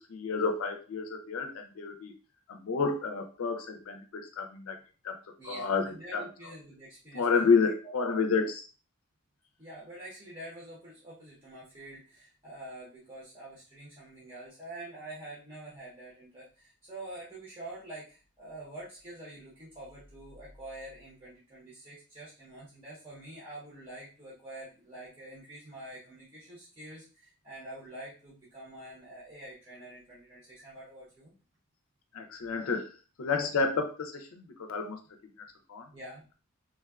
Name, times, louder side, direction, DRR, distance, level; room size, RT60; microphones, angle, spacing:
voice 1, 0.1-2.1 2.5-4.8 5.0-5.2 5.4-6.3 7.1-8.7 32.1-35.0 35.4-35.9, left 4 dB, 75° left, 5 dB, 0.4 m, -30 dB
voice 2, 5.4-7.2 7.6-8.0 9.6-31.3 35.9-36.2, right 1 dB, 25° right, -6 dB, 0.8 m, -46 dB
3.3 x 2.2 x 2.3 m, 0.36 s
head